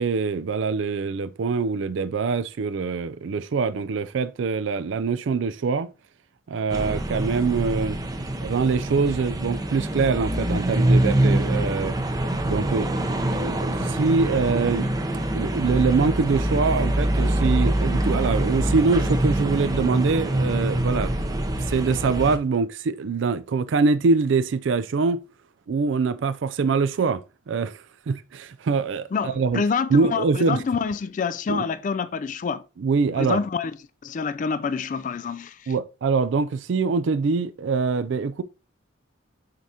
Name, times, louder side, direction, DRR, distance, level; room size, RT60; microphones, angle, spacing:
voice 1, 0.0-5.9 6.5-8.0 8.4-11.9 12.4-12.9 13.4-14.9 15.3-21.1 21.7-25.2 25.7-27.2 27.5-27.8 28.1-29.6 29.9-30.6 31.5-31.7 32.8-33.4 35.7-38.4, right 4 dB, 70° right, 0.4 m, -24 dB
sound 1, 6.7-22.4, right 1 dB, 20° right, 0.6 m, -24 dB
voice 2, 29.1-32.6 33.2-33.7 34.0-35.5, left 5 dB, 40° left, 0.3 m, -27 dB
7.4 x 4.8 x 2.7 m
head